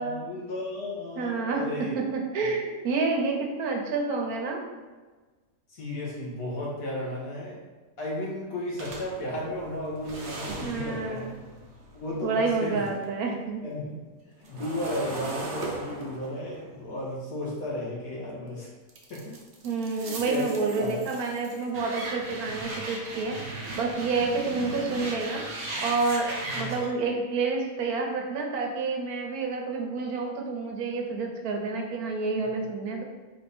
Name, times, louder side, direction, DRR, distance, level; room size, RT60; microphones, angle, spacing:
voice 1, 0.0-1.9 5.7-7.6 8.0-11.3 11.9-12.9 13.6-14.0 14.4-18.7 19.1-19.3 19.9-21.0 26.4-26.7, left 1 dB, 75° left, -5 dB, 1.6 m, -34 dB
voice 2, 1.2-4.6 10.6-11.3 12.2-13.6 19.6-23.5 23.8-33.0, right 4 dB, 90° right, 2 dB, 1.2 m, -29 dB
sound 1, 8.8-13.0 13.4-18.3 18.9-26.9, right 2 dB, 60° right, 1.0 m, -38 dB
4.6 x 2.6 x 3.4 m, 1.3 s
omnidirectional pair, 1.5 m